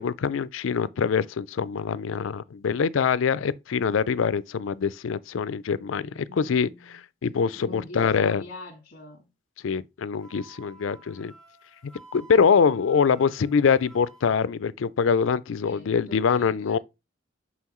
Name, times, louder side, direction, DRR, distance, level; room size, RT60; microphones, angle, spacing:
voice 1, 0.0-8.4 9.6-11.3 11.8-16.8, left 6 dB, 80° left, 0.4 m, -24 dB
voice 2, 6.0-7.0 7.5-9.3 15.6-16.8, left 2 dB, 55° left, 1.6 m, -44 dB
Wind instrument woodwind instrument, 10.2-14.4, right 2 dB, 5° left, 1.1 m, -52 dB
6.1 x 5.6 x 3.0 m
head